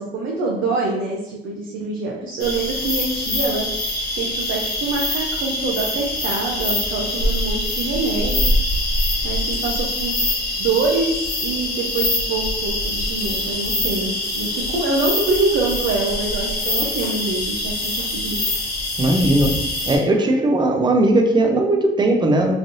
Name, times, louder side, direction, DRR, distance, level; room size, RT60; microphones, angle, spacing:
voice 1, 0.0-3.7 4.1-8.4 9.2-10.2 10.6-18.4, right 3 dB, 80° right, -3 dB, 0.6 m, -25 dB
sound 1, 2.4-20.0, left 1 dB, 50° left, 1.2 m, -24 dB
voice 2, 19.0-19.6 19.9-22.5, right 1 dB, 20° right, 3 dB, 0.5 m, -18 dB
3.1 x 2.6 x 2.6 m, 0.90 s
cardioid pair, 90°, 20 cm